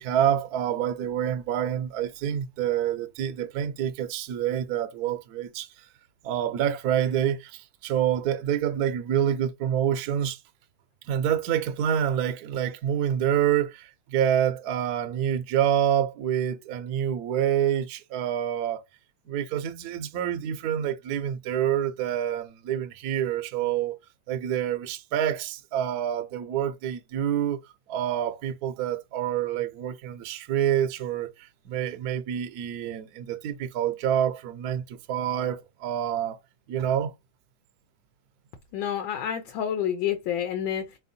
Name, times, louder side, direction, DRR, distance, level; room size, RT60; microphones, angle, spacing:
voice 1, 0.0-5.7 6.2-10.4 11.1-18.8 19.3-24.0 24.3-27.6 27.9-31.3 31.6-36.4 36.7-37.1, right 10 dB, 65° right, 1.0 m, -27 dB
voice 2, 38.7-41.0, left 9 dB, 75° left, 1.4 m, -29 dB
4.3 x 3.5 x 2.6 m
omnidirectional pair, 2.2 m